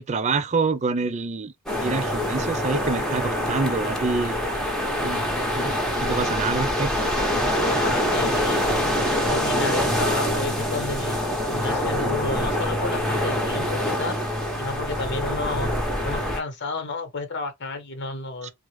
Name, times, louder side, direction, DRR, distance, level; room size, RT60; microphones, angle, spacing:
voice 1, 0.0-1.5 1.8-4.4 5.0-5.7 6.0-7.2 18.4-18.5, right 4 dB, 35° right, 0.4 m, -27 dB
sound 1, 1.7-16.4, equal, ahead, 0.8 m, -25 dB
voice 2, 7.7-8.6 9.3-11.2 11.4-14.2 14.5-15.7 16.0-18.5, left 3 dB, 55° left, 1.0 m, -31 dB
3.6 x 2.2 x 3.2 m
head